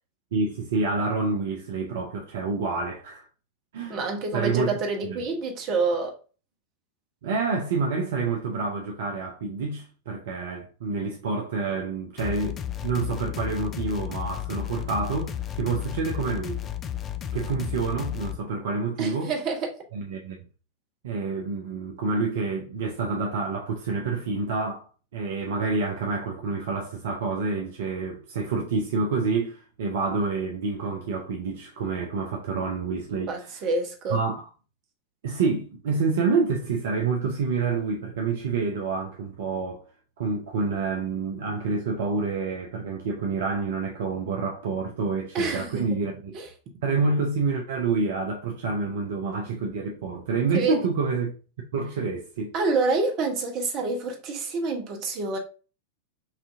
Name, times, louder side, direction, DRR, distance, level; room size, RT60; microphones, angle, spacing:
voice 1, 0.3-3.2 3.7-4.0 4.3-4.7 5.0-5.1 7.2-16.6 17.3-19.3 19.9-20.4 21.0-24.9 25.1-33.3 34.1-34.5 35.2-39.8 40.2-46.4 46.8-51.3 51.7-52.5, right 4 dB, 60° right, 0.6 m, -28 dB
voice 2, 3.9-6.1 19.0-19.7 33.3-34.2 45.3-46.0 46.3-46.5 50.5-50.8 52.5-55.4, right 3 dB, 40° right, 1.0 m, -27 dB
sound 1, 12.2-18.4, left 10 dB, 25° left, 0.4 m, -33 dB
5.7 x 2.8 x 2.6 m
figure-of-eight pair, 90°, 0 cm